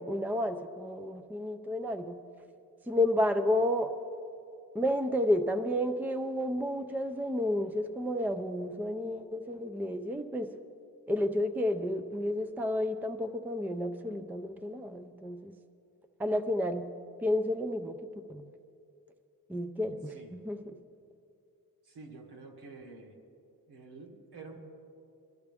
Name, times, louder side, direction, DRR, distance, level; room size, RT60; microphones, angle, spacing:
voice 1, 0.0-2.2 2.9-3.9 4.7-10.5 11.1-15.5 16.2-16.8 17.2-18.0 18.3-18.4 19.5-20.6, left 1 dB, 5° right, 9 dB, 0.4 m, -31 dB
voice 2, 20.0-20.4 21.8-23.1 23.7-24.6, right 3 dB, 90° right, 1 dB, 2.0 m, -49 dB
21.5 x 13.0 x 3.5 m, 2.6 s
wide cardioid pair, 160°, 37 cm